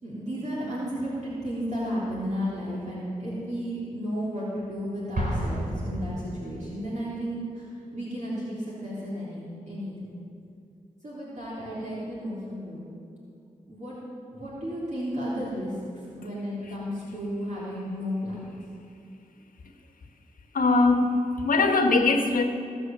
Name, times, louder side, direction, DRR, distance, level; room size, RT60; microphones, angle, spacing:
voice 1, 0.0-10.1 11.0-12.9 13.7-14.0 14.3-18.5, equal, 55° right, -8 dB, 3.6 m, -33 dB
Explosion, 5.1-6.9, equal, 75° right, 3.2 m, -31 dB
voice 2, 20.5-21.2 21.4-22.4, left 3 dB, 75° left, 4 dB, 1.3 m, -21 dB
17.0 x 6.6 x 7.3 m, 2.4 s
cardioid pair, 40°, 15 cm